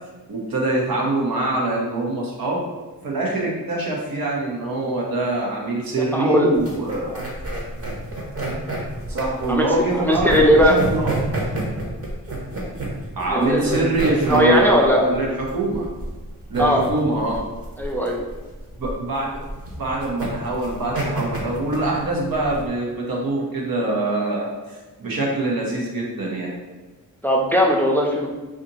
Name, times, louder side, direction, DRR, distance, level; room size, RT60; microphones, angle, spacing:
voice 1, 0.3-2.6 3.0-7.1 9.1-10.3 10.6-11.1 13.2-15.9 16.5-17.4 18.8-19.4 19.8-26.5, right 2 dB, 80° right, -2 dB, 0.9 m, -24 dB
voice 2, 6.1-6.5 7.1-7.2 9.5-9.7 10.0-10.8 13.3-13.8 14.3-15.0 16.6-16.8 17.8-18.2 27.2-28.3, equal, 5° left, 0 dB, 0.4 m, -18 dB
sound 1, 6.5-22.7, right 2 dB, 40° right, 1.0 m, -29 dB
2.7 x 2.4 x 3.9 m, 1.2 s
cardioid pair, 65°, 35 cm